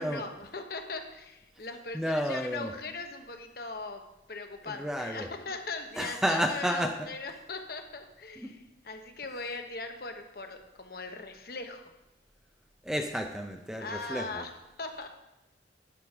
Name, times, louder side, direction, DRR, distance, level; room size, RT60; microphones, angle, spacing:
voice 1, 0.0-4.0 4.3-11.8 13.8-15.1, left 3 dB, 55° left, 5 dB, 1.0 m, -40 dB
voice 2, 1.9-2.7 4.7-5.3 6.0-6.9 8.4-8.5 12.8-14.4, equal, 5° right, 4 dB, 0.5 m, -31 dB
11.0 x 5.1 x 5.9 m, 0.94 s
head